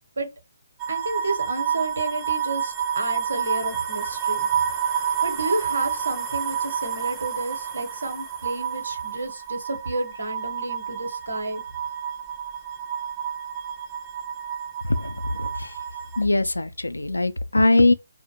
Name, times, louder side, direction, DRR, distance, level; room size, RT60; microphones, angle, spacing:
sound 1, 0.8-16.2, right 8 dB, 15° right, 0.4 m, -29 dB
voice 1, 0.9-4.5 5.2-11.6, right 2 dB, 70° right, 0.8 m, -31 dB
voice 2, 16.2-17.9, left 2 dB, 85° left, 0.3 m, -20 dB
2.4 x 2.1 x 2.8 m
figure-of-eight pair, 140°, 0 cm